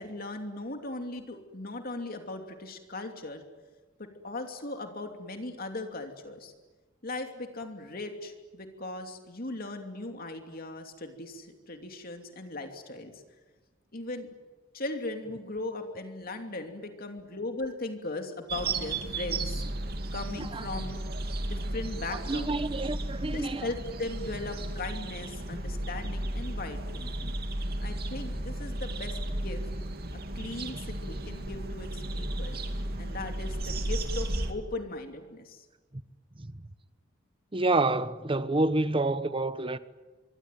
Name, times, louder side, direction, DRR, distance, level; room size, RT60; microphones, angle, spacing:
voice 1, 0.0-3.4 4.0-6.5 7.0-13.2 13.9-14.3 14.7-19.6 20.1-21.1 21.5-22.6 23.3-27.4 27.8-29.6 30.3-32.6 33.0-35.7, left 2 dB, 50° left, 2.9 m, -38 dB
sound 1, 18.5-34.5, right 1 dB, 50° right, 2.5 m, -34 dB
voice 2, 22.3-23.7 30.6-30.9 36.4-36.5 37.5-39.8, right 2 dB, 25° right, 1.1 m, -28 dB
26.0 x 23.0 x 9.2 m
head